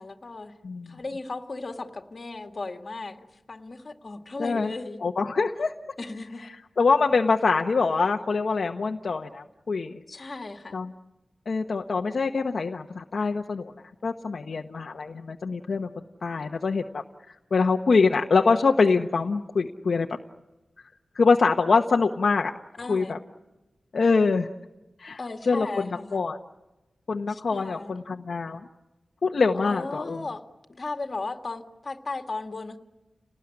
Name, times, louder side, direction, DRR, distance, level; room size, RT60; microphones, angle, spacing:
voice 1, 0.0-0.5 0.9-3.2 3.5-5.0 6.0-6.4 10.1-10.8 22.8-23.1 25.2-26.2 27.3-28.0 29.6-30.4 30.7-32.8, left 3 dB, 45° left, 5 dB, 2.0 m, -36 dB
voice 2, 0.6-0.9 4.4-4.7 5.0-5.7 6.8-10.0 10.7-10.9 11.5-13.7 14.0-15.9 16.2-20.1 21.1-22.5 22.9-23.2 23.9-24.5 25.0-25.2 25.5-25.7 26.1-26.4 27.1-28.6 29.2-30.3, left 4 dB, 70° left, 3 dB, 1.1 m, -24 dB
30.0 x 19.0 x 9.9 m, 1.1 s
wide cardioid pair, 115°, 0 cm